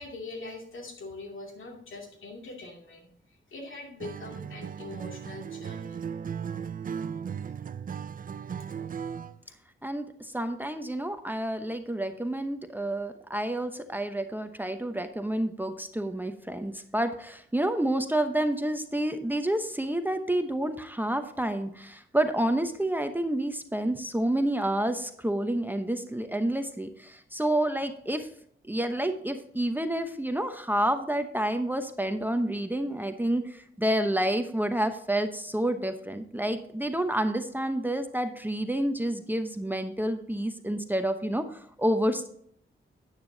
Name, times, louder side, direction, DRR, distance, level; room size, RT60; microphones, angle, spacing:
voice 1, 0.0-6.0, left 2 dB, 70° left, 1 dB, 2.6 m, -43 dB
Acoustic guitar, 4.0-9.4, right 7 dB, 40° right, 0.4 m, -36 dB
voice 2, 9.8-28.3 28.6-42.3, right 1 dB, 10° right, 7 dB, 0.8 m, -29 dB
10.0 x 9.2 x 2.7 m, 0.66 s
cardioid pair, 70°, 21 cm